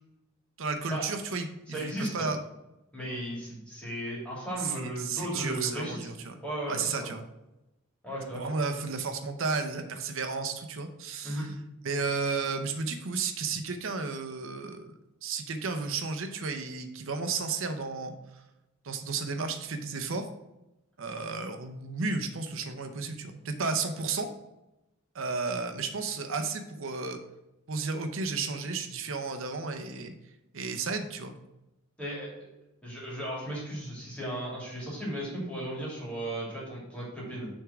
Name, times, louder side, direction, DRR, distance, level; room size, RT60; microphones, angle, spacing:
voice 1, 0.6-2.4 4.6-6.4 6.7-7.2 8.3-11.4 11.8-14.9 15.2-18.1 18.8-20.3 21.0-24.3 25.1-27.2 27.7-30.1 30.5-31.3, right 4 dB, 65° right, 7 dB, 0.7 m, -33 dB
voice 2, 1.7-2.3 2.9-6.1 6.4-7.1 8.0-8.5 11.2-11.5 32.0-32.3 32.8-37.5, right 1 dB, 5° left, -5 dB, 2.5 m, -35 dB
6.3 x 3.6 x 6.0 m, 0.93 s
head